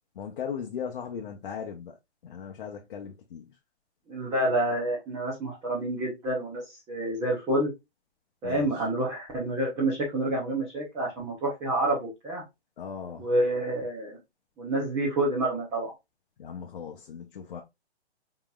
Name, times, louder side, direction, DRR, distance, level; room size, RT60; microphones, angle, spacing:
voice 1, 0.1-2.0 2.2-3.5 8.4-8.7 12.8-13.3 16.4-17.6, left 7 dB, 50° left, 0.8 m, -38 dB
voice 2, 4.1-7.7 8.4-12.4 13.2-14.2 14.6-15.9, right 1 dB, 10° right, 0.6 m, -28 dB
4.1 x 3.8 x 2.3 m
hypercardioid pair, 160°, 34 cm